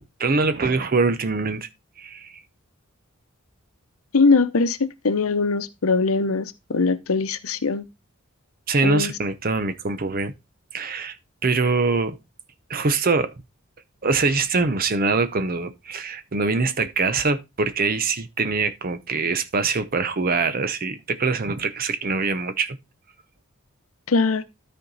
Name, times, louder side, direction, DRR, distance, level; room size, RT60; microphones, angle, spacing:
voice 1, 0.0-1.7 2.0-2.4 8.7-10.3 10.7-11.2 11.4-12.2 12.7-13.3 14.0-22.8, right 4 dB, 45° right, 0.7 m, -23 dB
voice 2, 4.1-7.8 8.8-9.1 24.1-24.4, left 4 dB, 80° left, 0.8 m, -21 dB
13.0 x 4.4 x 3.9 m
head